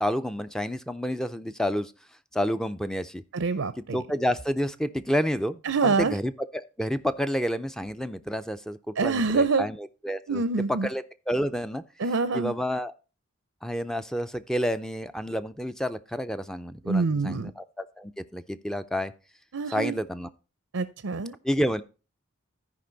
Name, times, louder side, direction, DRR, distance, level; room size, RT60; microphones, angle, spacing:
voice 1, 0.0-1.9 2.3-3.2 3.9-10.4 10.7-11.8 12.3-12.9 13.6-19.1 19.7-20.3 21.4-21.8, equal, 5° left, 11 dB, 0.4 m, -29 dB
voice 2, 3.3-4.0 5.6-6.2 9.0-9.7 10.3-10.9 12.0-12.5 16.9-17.5 19.5-20.0 20.7-21.4, right 4 dB, 70° right, 12 dB, 0.6 m, -26 dB
13.5 x 5.2 x 3.9 m, 0.33 s
head